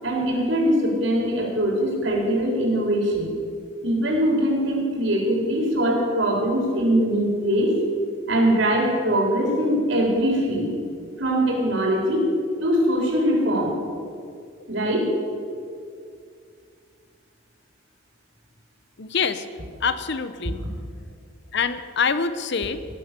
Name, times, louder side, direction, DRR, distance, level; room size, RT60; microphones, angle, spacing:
voice 1, 0.0-3.3 3.8-7.7 8.3-10.7 11.2-12.2 12.6-13.8 14.7-15.1, right 1 dB, 65° right, -2 dB, 4.3 m, -22 dB
voice 2, 19.0-19.5 19.8-20.6 21.5-22.9, left 5 dB, 60° left, 12 dB, 0.8 m, -25 dB
18.5 x 11.0 x 6.9 m, 2.2 s
head